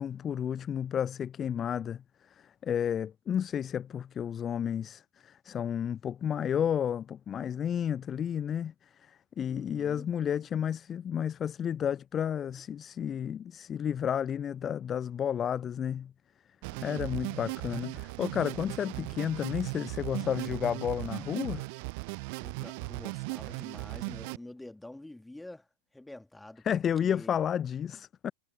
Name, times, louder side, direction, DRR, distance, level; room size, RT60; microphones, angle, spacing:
voice 1, 0.0-16.1 16.8-21.6 26.6-28.3, left 9 dB, 25° left, 0.4 m, -32 dB
voice 2, 9.5-10.0 16.7-17.2 22.4-25.7 25.9-26.7 27.0-27.3, left 1 dB, 5° left, 2.0 m, -47 dB
sound 1, 16.6-24.4, right 31 dB, 45° right, 0.7 m, -37 dB
figure-of-eight pair, 90°, 0 cm